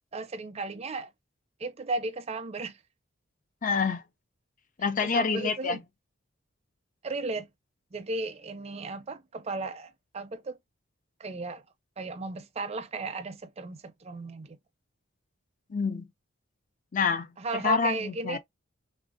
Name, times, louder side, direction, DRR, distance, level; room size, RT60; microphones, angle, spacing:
voice 1, 0.1-1.1 1.6-2.8 5.0-5.8 7.0-7.5 7.9-10.6 11.2-11.6 12.0-14.6 17.4-18.4, right 3 dB, 30° right, 0.4 m, -35 dB
voice 2, 3.6-4.0 4.8-5.8 15.7-16.1 16.9-18.4, left 5 dB, 40° left, 0.4 m, -27 dB
3.4 x 2.6 x 2.4 m
head